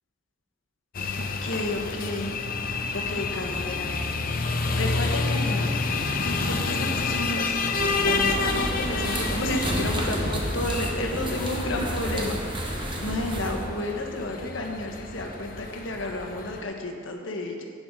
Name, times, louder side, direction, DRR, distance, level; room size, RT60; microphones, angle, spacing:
sound 1, 0.9-16.6, left 3 dB, 45° left, 0.7 m, -29 dB
voice 1, 1.1-2.3 2.9-4.0 4.7-5.8 6.5-12.4 13.0-17.7, left 1 dB, 90° left, 2 dB, 1.3 m, -31 dB
sound 2, 7.7-13.7, right 1 dB, 25° right, 1.1 m, -31 dB
11.5 x 8.8 x 3.8 m, 2.1 s
head